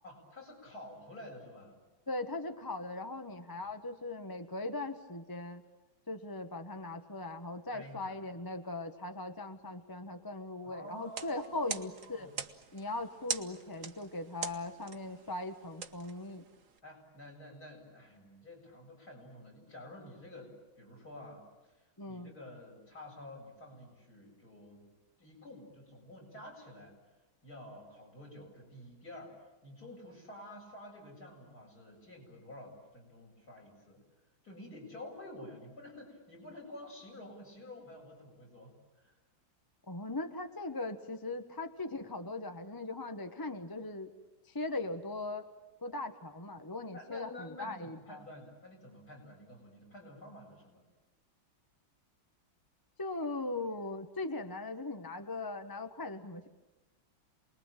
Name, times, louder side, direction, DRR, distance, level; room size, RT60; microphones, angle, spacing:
voice 1, 0.0-1.8 3.5-3.7 7.7-8.2 10.6-12.3 16.8-24.9 25.2-27.0 27.4-34.0 34.4-39.1 46.9-50.8, left 1 dB, 50° left, -1 dB, 8.2 m, -50 dB
voice 2, 2.1-5.6 6.1-12.3 12.7-16.4 22.0-22.3 39.9-44.1 44.4-45.5 45.8-48.2 53.0-56.5, left 2 dB, 15° left, 7 dB, 0.8 m, -39 dB
sound 1, 11.0-16.8, right 6 dB, 45° right, 1.4 m, -43 dB
28.5 x 21.0 x 9.0 m, 1.1 s
omnidirectional pair, 2.1 m